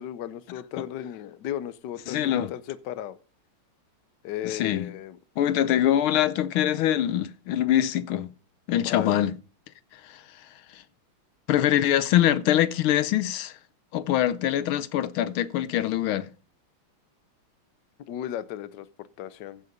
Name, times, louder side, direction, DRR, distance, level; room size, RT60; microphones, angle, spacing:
voice 1, 0.0-3.2 4.2-5.2 8.8-9.1 18.1-19.6, left 11 dB, 65° left, 1.3 m, -35 dB
voice 2, 2.1-2.5 4.4-4.9 5.4-8.3 8.7-9.3 10.0-10.2 10.7-10.8 11.5-13.5 13.9-16.3, left 11 dB, 80° left, 1.6 m, -24 dB
15.5 x 6.7 x 5.3 m
omnidirectional pair, 2.3 m